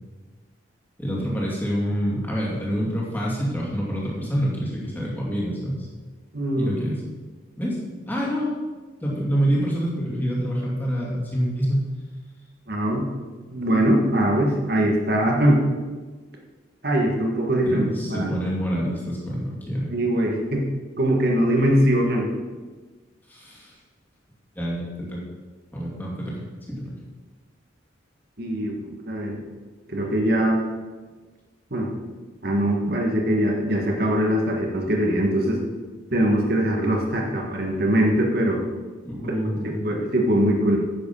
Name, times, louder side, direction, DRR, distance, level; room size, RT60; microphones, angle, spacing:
voice 1, 1.0-5.9 6.6-7.0 7.6-7.8 8.1-8.5 9.0-11.8 17.6-19.9 23.3-23.7 24.5-25.2 25.7-26.4 26.7-26.9 39.0-39.8, equal, 10° left, -4 dB, 2.5 m, -26 dB
voice 2, 6.3-6.8 12.7-13.1 13.5-15.6 16.8-18.4 19.9-20.7 21.0-22.3 28.4-29.4 29.9-30.6 31.7-31.9 32.4-35.6 36.1-38.6 39.2-39.4 39.8-40.8, right 1 dB, 50° right, 0 dB, 1.5 m, -22 dB
10.0 x 7.9 x 5.5 m, 1.3 s
head